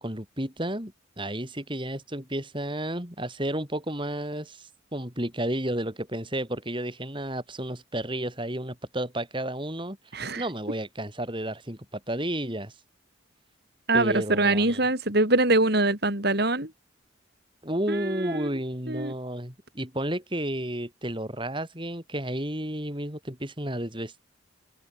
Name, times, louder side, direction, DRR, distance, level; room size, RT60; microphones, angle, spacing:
voice 1, 0.0-10.0 10.4-12.7 13.9-14.8 17.6-24.2, right 1 dB, 25° right, 6.4 m, -32 dB
voice 2, 10.1-10.4 13.9-16.7 17.9-18.5 18.9-19.1, right 2 dB, 55° right, 4.6 m, -24 dB
head